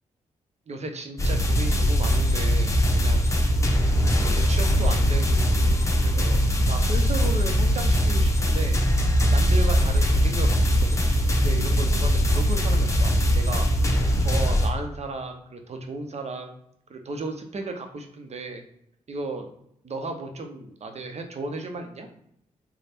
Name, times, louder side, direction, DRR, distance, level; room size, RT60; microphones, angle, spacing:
voice 1, 0.7-3.5 4.0-6.4 6.7-8.8 9.3-16.6 16.9-18.6 19.1-19.5 19.8-22.1, right 2 dB, 50° right, 5 dB, 0.8 m, -35 dB
sound 1, 1.2-14.7, equal, 20° left, 1.0 m, -21 dB
3.3 x 2.3 x 4.3 m, 0.73 s
supercardioid pair, 45°, 15 cm